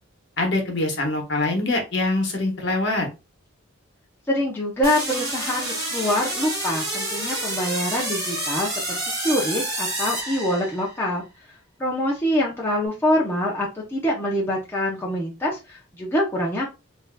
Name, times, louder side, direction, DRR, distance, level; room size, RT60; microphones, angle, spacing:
voice 1, 0.4-3.1, left 2 dB, 55° left, 2 dB, 1.0 m, -24 dB
voice 2, 4.3-11.5 11.8-16.6, left 1 dB, 10° left, -4 dB, 0.6 m, -25 dB
sound 1, 4.8-11.0, right 1 dB, 20° right, 1.6 m, -29 dB
3.6 x 2.6 x 2.2 m, 0.27 s
head